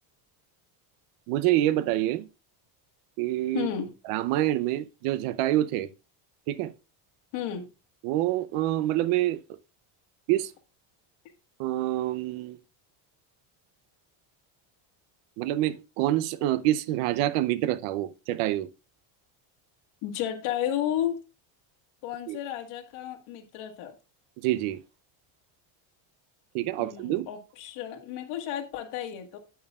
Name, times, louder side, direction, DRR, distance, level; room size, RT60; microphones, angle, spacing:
voice 1, 1.3-2.3 3.2-3.7 4.1-5.9 6.5-6.7 8.0-9.4 10.3-10.5 11.6-12.6 15.4-18.7 22.3-22.4 24.4-24.8 26.5-27.3, right 14 dB, 90° right, 0.8 m, -26 dB
voice 2, 3.5-3.9 7.3-7.7 20.0-21.2 22.0-24.0 26.8-29.4, left 10 dB, 85° left, 1.8 m, -32 dB
9.1 x 8.7 x 2.4 m
cardioid pair, 160°, 49 cm